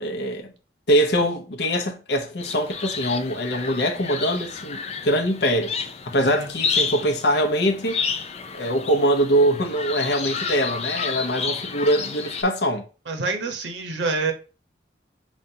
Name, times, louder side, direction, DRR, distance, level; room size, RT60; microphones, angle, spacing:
voice 1, 0.0-0.5 0.9-5.7 6.1-8.0 8.5-12.8, equal, 65° left, 0.7 m, -23 dB
sound 1, 2.4-12.4, left 5 dB, 35° left, 0.4 m, -31 dB
voice 2, 13.1-14.3, right 3 dB, 90° right, 0.9 m, -26 dB
5.2 x 2.4 x 2.7 m
head